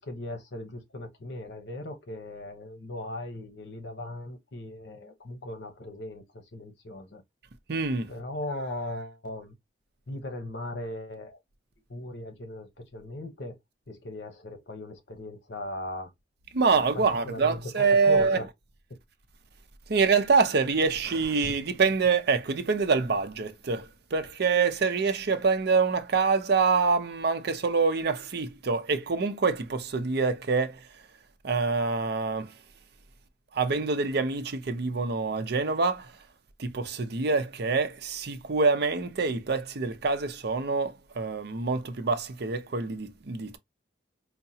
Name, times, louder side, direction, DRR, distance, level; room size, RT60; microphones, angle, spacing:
voice 1, 0.0-7.2 8.1-9.5 10.1-11.4 11.9-13.6 13.9-16.1 16.8-18.5, left 1 dB, 70° left, 1.0 m, -38 dB
voice 2, 7.7-8.1 16.5-18.4 19.9-30.8 31.4-32.5 33.5-36.1 36.6-43.6, right 4 dB, 60° right, 0.6 m, -26 dB
4.7 x 2.2 x 2.7 m
head